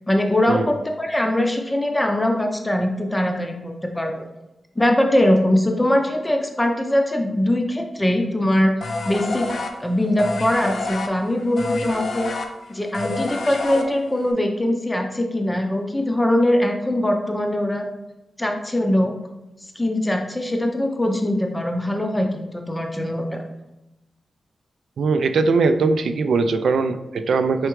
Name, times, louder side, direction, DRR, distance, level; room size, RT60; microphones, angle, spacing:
voice 1, 0.1-4.1 4.8-8.7 9.1-9.4 9.8-12.3 12.7-17.8 18.4-19.1 19.8-23.4, left 1 dB, 15° left, 3 dB, 0.5 m, -21 dB
sound 1, 8.8-14.3, left 3 dB, 70° left, 0.5 m, -29 dB
voice 2, 25.0-27.7, right 4 dB, 90° right, 9 dB, 0.3 m, -20 dB
4.6 x 3.3 x 3.0 m, 0.95 s
wide cardioid pair, 105°, 0 cm